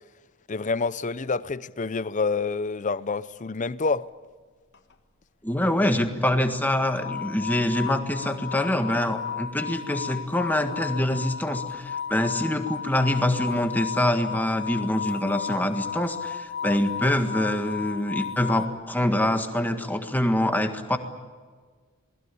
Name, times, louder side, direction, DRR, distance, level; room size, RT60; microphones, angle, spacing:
voice 1, 0.5-4.1, left 4 dB, 35° left, 0.7 m, -27 dB
sound 1, 4.7-4.9 6.9-18.7, left 7 dB, 50° left, 1.6 m, -34 dB
voice 2, 5.4-21.0, left 1 dB, 10° left, 1.7 m, -25 dB
27.5 x 20.5 x 8.6 m
head